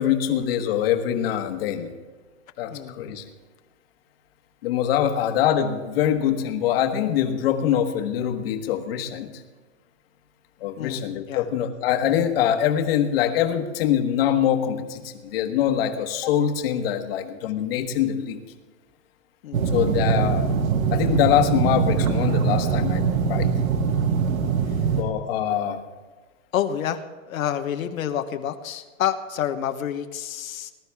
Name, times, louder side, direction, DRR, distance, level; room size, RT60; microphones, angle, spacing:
voice 1, 0.0-1.9 2.6-3.2 4.6-9.3 10.6-18.4 19.7-20.5 20.9-23.0 23.3-23.5 24.9-25.8, left 10 dB, 45° left, 7 dB, 1.5 m, -24 dB
voice 2, 19.4-19.8 26.5-30.7, left 10 dB, 80° left, 7 dB, 1.2 m, -28 dB
sound 1, 19.5-25.0, right 6 dB, 85° right, 1.7 m, -22 dB
20.0 x 12.0 x 3.5 m, 1.3 s
hypercardioid pair, 160°, 40 cm